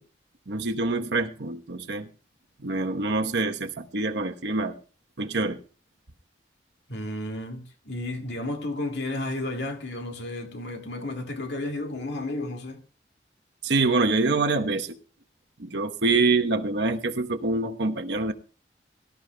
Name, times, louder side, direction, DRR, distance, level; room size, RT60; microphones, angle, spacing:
voice 1, 0.5-2.1 2.6-4.8 5.2-5.6 13.6-15.0 15.6-18.3, right 3 dB, 75° right, 1.0 m, -25 dB
voice 2, 6.9-12.8, left 2 dB, 80° left, 2.0 m, -32 dB
23.5 x 13.0 x 2.2 m
head